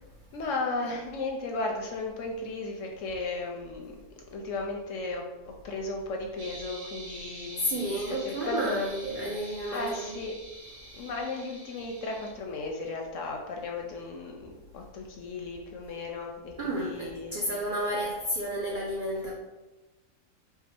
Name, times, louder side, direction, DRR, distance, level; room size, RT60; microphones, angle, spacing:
voice 1, 0.3-4.0 4.3-8.9 9.4-10.3 10.9-17.3, left 3 dB, 70° left, 1 dB, 0.8 m, -35 dB
sound 1, 6.4-12.3, right 1 dB, 85° right, 1.5 m, -46 dB
voice 2, 7.6-10.2 16.6-19.3, right 1 dB, 65° right, -3 dB, 0.5 m, -31 dB
4.7 x 2.0 x 4.3 m, 1.1 s
omnidirectional pair, 1.6 m